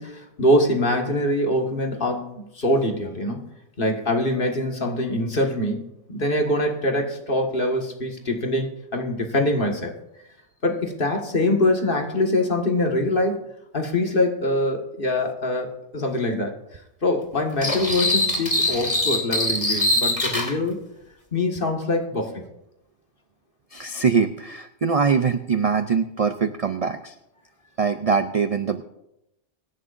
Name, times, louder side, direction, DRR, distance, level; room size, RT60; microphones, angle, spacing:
voice 1, 0.0-3.4 3.8-9.9 10.6-13.5 13.7-16.5 17.0-20.8 21.3-22.4, left 1 dB, 45° left, 2 dB, 1.8 m, -24 dB
sound 1, 17.6-20.5, left 1 dB, 25° left, 2.2 m, -23 dB
voice 2, 23.7-27.1 27.8-28.8, right 5 dB, 50° right, 9 dB, 0.4 m, -23 dB
24.0 x 11.0 x 2.6 m, 0.85 s
omnidirectional pair, 1.3 m